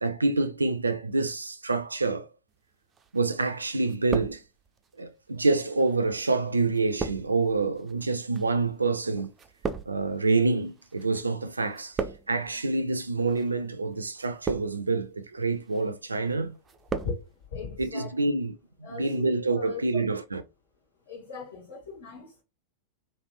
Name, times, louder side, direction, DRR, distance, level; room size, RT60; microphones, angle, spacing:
voice 1, 0.0-2.3 3.1-4.4 5.0-9.3 9.9-12.0 12.3-16.6 17.8-18.5 18.9-20.4, right 3 dB, 80° right, 0.4 m, -27 dB
sound 1, 3.0-3.5 3.8-4.9 5.6-11.2 11.5-12.5 13.2-13.5 14.2-15.0 15.4-15.9 16.2-17.2 17.4-17.5, right 5 dB, 20° right, 0.4 m, -37 dB
voice 2, 17.0-18.3 18.8-20.1 21.1-22.4, left 5 dB, 60° left, 1.8 m, -39 dB
3.3 x 2.6 x 3.0 m
figure-of-eight pair, 90°, 0 cm